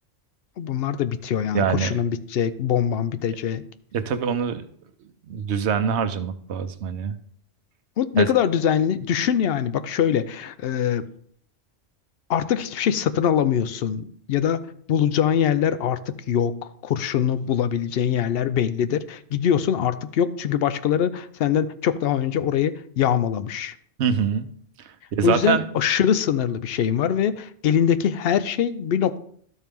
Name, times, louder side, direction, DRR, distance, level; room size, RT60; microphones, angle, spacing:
voice 1, 0.6-3.6 8.0-11.0 12.3-14.6 14.9-23.7 25.2-29.2, left 9 dB, 65° left, 13 dB, 0.7 m, -23 dB
voice 2, 1.5-1.9 3.9-4.6 5.3-7.1 8.2-8.3 24.0-24.5 25.1-25.6, right 7 dB, 75° right, 9 dB, 1.0 m, -24 dB
12.5 x 4.5 x 3.5 m, 0.62 s
omnidirectional pair, 1.2 m